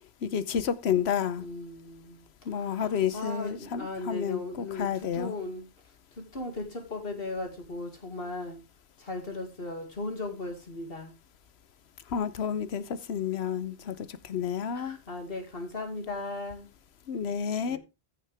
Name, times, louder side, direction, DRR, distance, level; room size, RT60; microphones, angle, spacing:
voice 1, 0.2-1.4 2.5-5.3 12.1-15.0 17.1-17.8, left 8 dB, 85° left, 1.0 m, -30 dB
voice 2, 1.4-2.3 2.5-5.7 6.2-8.6 9.0-11.1 14.7-16.7 17.7-17.8, left 2 dB, 65° left, 2.5 m, -37 dB
14.5 x 6.5 x 3.5 m
omnidirectional pair, 1.1 m